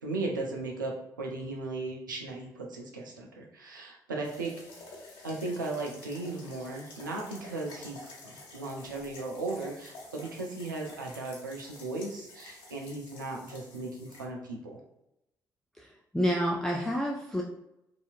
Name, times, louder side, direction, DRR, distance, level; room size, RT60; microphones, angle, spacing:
voice 1, 0.0-4.6 5.2-14.8, right 2 dB, 85° right, 0 dB, 0.4 m, -37 dB
sound 1, 4.2-14.2, left 2 dB, 60° left, 0.8 m, -49 dB
voice 2, 15.8-17.4, equal, 5° left, -2 dB, 0.3 m, -29 dB
2.7 x 2.3 x 2.4 m, 0.85 s
figure-of-eight pair, 40°, 10 cm